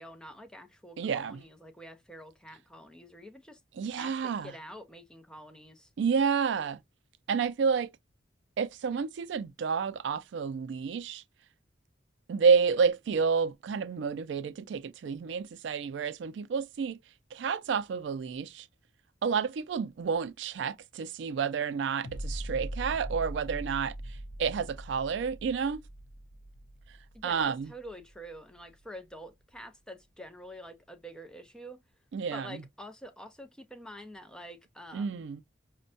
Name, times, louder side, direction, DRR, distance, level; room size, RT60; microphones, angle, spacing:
voice 1, 0.0-3.6 3.9-5.9 27.1-31.8 32.3-35.2, equal, 5° left, 0.5 m, -47 dB
voice 2, 1.0-1.4 3.8-4.5 6.0-6.8 7.3-7.9 8.6-11.2 12.3-17.0 17.3-18.7 19.2-23.9 24.4-25.8 27.2-27.7 32.1-32.5 34.9-35.4, right 6 dB, 70° right, 0.3 m, -29 dB
sound 1, 22.0-29.1 29.5-29.6, right 1 dB, 75° left, 0.6 m, -41 dB
5.2 x 2.1 x 2.6 m
head